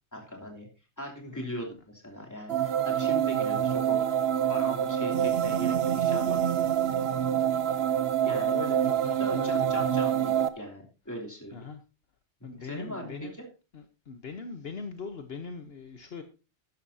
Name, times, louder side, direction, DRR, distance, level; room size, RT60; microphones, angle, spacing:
voice 1, 0.1-0.7 1.0-4.2 4.5-6.4 6.9-7.4 8.2-8.8 9.2-11.6 12.4-13.5, equal, 15° left, -1 dB, 3.0 m, -39 dB
sound 1, 2.5-10.5, right 10 dB, 65° right, 1.0 m, -26 dB
voice 2, 8.2-9.9 11.5-11.8 12.4-13.3 13.7-16.2, left 5 dB, 60° left, 7 dB, 1.2 m, -41 dB
13.0 x 11.5 x 2.7 m, 0.31 s
omnidirectional pair, 1.2 m